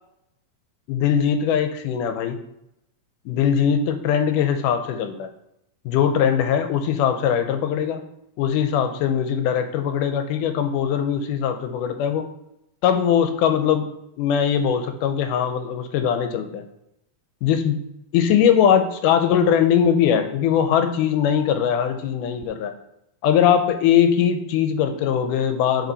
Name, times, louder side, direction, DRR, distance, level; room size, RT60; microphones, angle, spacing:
voice 1, 0.9-2.4 3.3-5.3 5.9-8.0 8.4-12.3 12.8-13.9 14.2-16.7 17.4-17.8 18.1-22.7 23.2-25.9, left 8 dB, 90° left, 7 dB, 2.3 m, -21 dB
9.0 x 4.9 x 4.0 m, 0.81 s
omnidirectional pair, 3.6 m